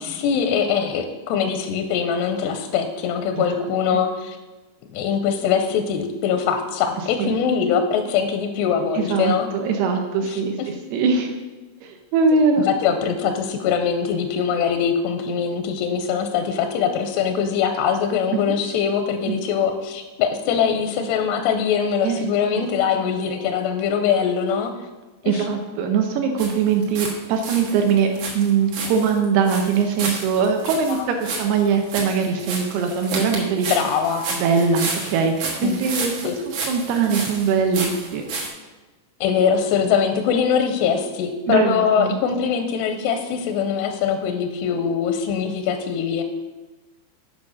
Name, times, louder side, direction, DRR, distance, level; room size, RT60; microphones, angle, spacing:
voice 1, 0.0-4.4 4.9-9.5 10.2-10.7 12.7-24.7 25.2-25.5 33.7-34.2 35.6-35.8 36.2-36.4 39.2-46.2, left 7 dB, 85° left, 6 dB, 2.4 m, -22 dB
voice 2, 8.9-11.3 11.8-12.7 18.5-18.6 19.3-19.4 22.0-22.2 22.6-22.7 25.3-28.1 28.3-33.7 34.3-36.1 36.5-38.2 41.5-42.2, right 5 dB, 80° right, 4 dB, 2.4 m, -21 dB
sound 1, 26.4-27.1 27.4-38.5, right 3 dB, 60° right, 2.0 m, -31 dB
8.4 x 5.0 x 6.3 m, 1.2 s
omnidirectional pair, 5.2 m